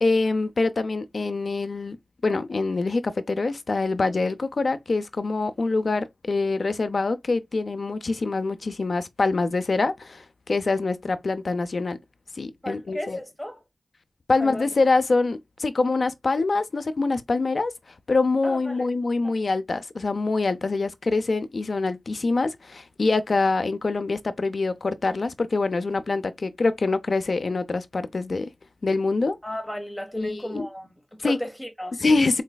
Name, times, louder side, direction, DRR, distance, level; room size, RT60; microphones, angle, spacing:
voice 1, 0.0-2.0 2.2-12.0 12.4-13.2 14.3-17.7 18.1-28.5 28.8-29.4 30.2-30.7 31.2-31.4 32.0-32.4, left 3 dB, 70° left, 0.5 m, -25 dB
voice 2, 12.6-13.6 14.4-14.7 18.4-18.9 19.2-19.5 29.4-32.0, equal, 15° left, 1.2 m, -34 dB
4.1 x 3.2 x 2.2 m
wide cardioid pair, 80°, 0 cm